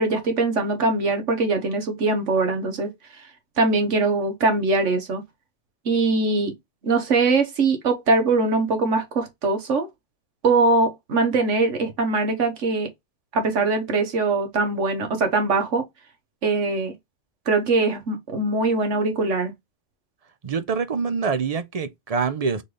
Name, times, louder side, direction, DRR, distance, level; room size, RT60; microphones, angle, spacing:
voice 1, 0.0-2.9 3.6-5.2 5.8-6.5 6.8-9.9 10.4-12.9 13.3-15.9 16.4-16.9 17.5-19.5, right 3 dB, 80° right, 1.6 m, -22 dB
voice 2, 20.4-22.6, right 5 dB, 40° right, 0.6 m, -25 dB
4.0 x 3.2 x 3.8 m
omnidirectional pair, 1.3 m